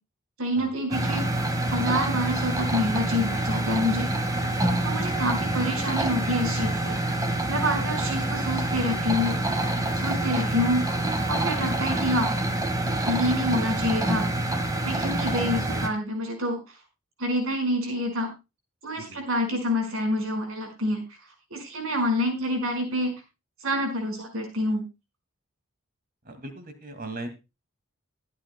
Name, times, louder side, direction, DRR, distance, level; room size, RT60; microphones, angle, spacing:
voice 1, 0.4-4.4 4.8-7.0 7.5-9.4 10.0-11.0 11.3-12.3 13.0-14.3 14.8-16.6 17.2-18.3 18.8-21.0 21.5-23.1 23.6-24.8, left 1 dB, 80° right, 3 dB, 5.1 m, -27 dB
sound 1, 0.9-15.9, right 1 dB, 15° right, 1.7 m, -27 dB
voice 2, 26.2-27.3, right 2 dB, 45° right, 7 dB, 2.2 m, -38 dB
22.0 x 9.0 x 2.2 m, 0.26 s
head